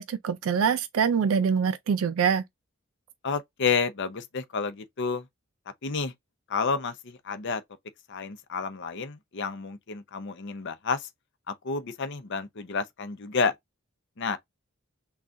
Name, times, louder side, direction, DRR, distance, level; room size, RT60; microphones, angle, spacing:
voice 1, 0.0-2.4, right 6 dB, 70° right, 0.4 m, -24 dB
voice 2, 3.2-5.3 5.8-6.1 6.5-7.6 8.1-11.1 11.5-13.5 14.2-14.4, left 5 dB, 60° left, 0.7 m, -30 dB
3.7 x 2.3 x 2.6 m
head